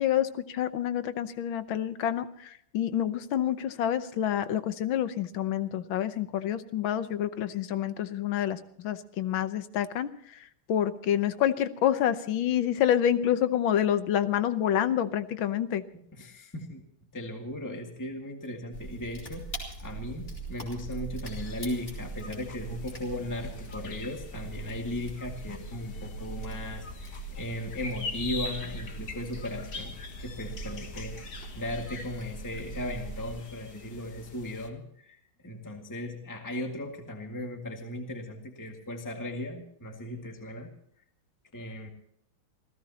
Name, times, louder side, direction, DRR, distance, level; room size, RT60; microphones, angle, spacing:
voice 1, 0.0-10.1 10.7-15.8, left 10 dB, 75° left, 12 dB, 1.6 m, -28 dB
voice 2, 16.1-16.8 17.1-40.7 41.5-41.9, left 1 dB, 10° left, 3 dB, 1.9 m, -37 dB
sound 1, 18.7-33.4, right 3 dB, 35° left, 4.5 m, -41 dB
sound 2, 21.2-34.7, left 4 dB, 50° left, 1.8 m, -44 dB
28.5 x 15.5 x 2.9 m, 0.67 s
omnidirectional pair, 2.2 m